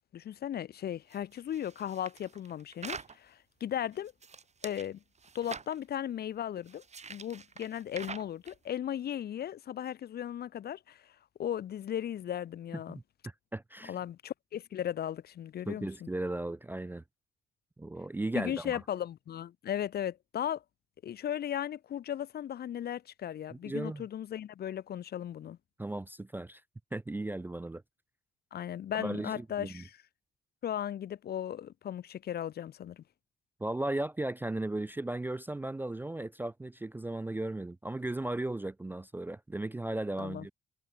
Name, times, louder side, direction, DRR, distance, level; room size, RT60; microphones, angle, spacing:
voice 1, 0.1-4.1 4.6-5.0 5.3-6.8 7.1-11.1 11.4-13.0 13.9-16.1 18.3-20.6 21.0-25.6 28.5-30.0 30.6-33.0 40.2-40.5, left 10 dB, 55° left, 0.6 m, -36 dB
sound 1, 1.1-3.2 3.8-4.9 5.2-5.8 6.6-8.6, right 5 dB, 35° right, 1.5 m, -45 dB
voice 2, 13.5-14.0 15.7-17.0 17.8-18.8 23.5-24.0 25.8-26.6 26.9-27.8 28.9-29.8 33.6-40.5, right 2 dB, 10° right, 0.3 m, -36 dB
cardioid pair, 90°, 20 cm